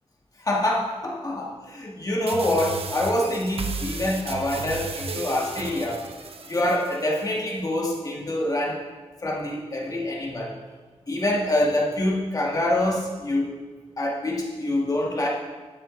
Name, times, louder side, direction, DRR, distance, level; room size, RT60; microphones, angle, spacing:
voice 1, 0.4-6.0 6.5-8.8 9.2-10.6 11.1-13.6 14.0-15.3, left 1 dB, 35° left, -3 dB, 1.9 m, -25 dB
sound 1, 2.3-7.3, right 4 dB, 60° right, 0.8 m, -34 dB
12.0 x 6.7 x 3.9 m, 1.4 s
wide cardioid pair, 130°, 11 cm